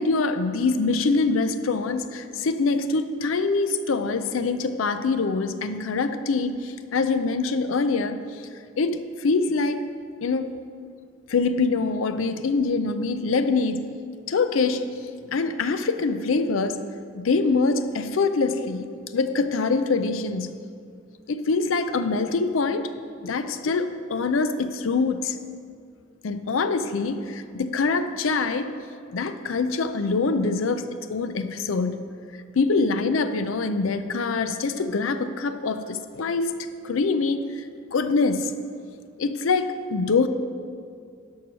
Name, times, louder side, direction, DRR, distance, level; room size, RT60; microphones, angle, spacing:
voice 1, 0.0-8.5 8.8-9.8 10.2-10.5 11.3-14.0 14.3-14.9 15.3-16.9 17.1-20.6 21.3-22.9 23.2-25.4 26.2-28.7 29.1-32.1 32.5-38.5 39.2-40.3, left 4 dB, 80° left, 10 dB, 0.5 m, -24 dB
12.0 x 4.7 x 6.2 m, 2.3 s
head